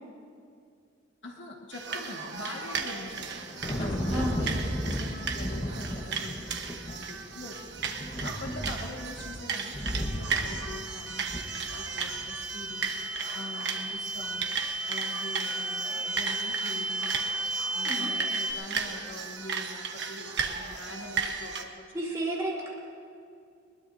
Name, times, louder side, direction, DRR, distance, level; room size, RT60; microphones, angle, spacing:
voice 1, 1.2-12.9 13.3-17.1 17.7-21.8 22.5-22.7, left 2 dB, 65° left, 0 dB, 1.9 m, -44 dB
sound 1, 1.7-21.6, right 5 dB, 60° right, 1.3 m, -35 dB
Thunder, 3.0-12.4, equal, 25° left, 1.4 m, -35 dB
voice 2, 4.1-4.7 8.5-8.7 17.9-18.1 21.9-22.7, right 1 dB, 15° right, -5 dB, 3.9 m, -33 dB
sound 2, 9.6-18.5, right 2 dB, 80° right, 3.0 m, -35 dB
22.0 x 21.0 x 2.8 m, 2.3 s
head